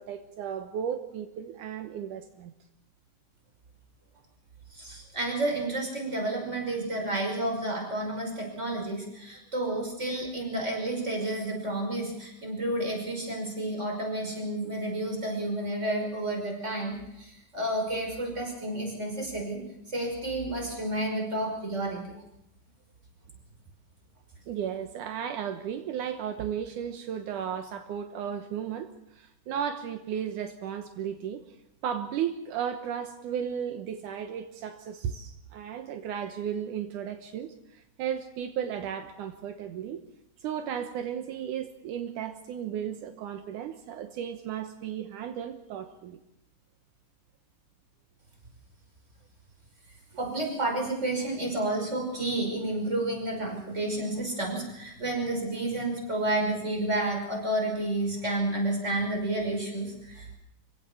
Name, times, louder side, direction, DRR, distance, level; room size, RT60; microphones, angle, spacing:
voice 1, 0.0-2.5 24.5-31.4 31.8-40.0 40.4-46.2, right 8 dB, 75° right, 7 dB, 2.6 m, -34 dB
voice 2, 4.7-19.6 19.9-22.1 50.2-60.3, right 1 dB, 20° right, 1 dB, 5.7 m, -30 dB
26.0 x 16.5 x 7.1 m, 0.87 s
omnidirectional pair, 3.6 m